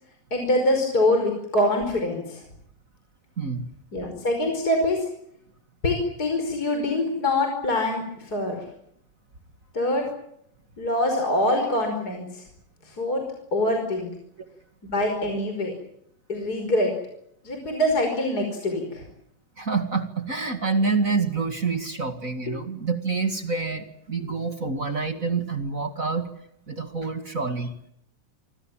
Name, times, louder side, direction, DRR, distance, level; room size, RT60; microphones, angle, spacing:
voice 1, 0.3-2.4 3.9-5.1 5.8-8.6 9.7-10.0 10.8-12.4 12.9-13.2 13.5-14.1 14.8-15.7 16.3-16.9 17.4-19.0 24.3-24.4, left 1 dB, 25° left, 4 dB, 5.4 m, -24 dB
voice 2, 3.4-3.7 19.6-26.3 26.7-27.7, right 4 dB, 30° right, 7 dB, 1.8 m, -27 dB
27.5 x 25.5 x 7.4 m, 0.73 s
omnidirectional pair, 4.1 m